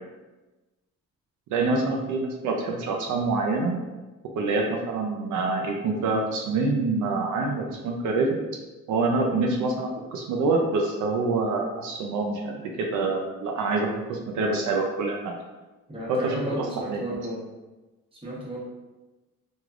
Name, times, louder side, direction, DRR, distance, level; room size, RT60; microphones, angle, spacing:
voice 1, 1.5-3.8 4.3-8.4 8.9-15.3 16.1-17.0, right 3 dB, 80° right, 1 dB, 0.5 m, -26 dB
voice 2, 15.9-17.4 18.1-18.6, right 1 dB, 20° right, -6 dB, 1.0 m, -33 dB
3.2 x 2.3 x 2.4 m, 1.1 s
cardioid pair, 90°, 30 cm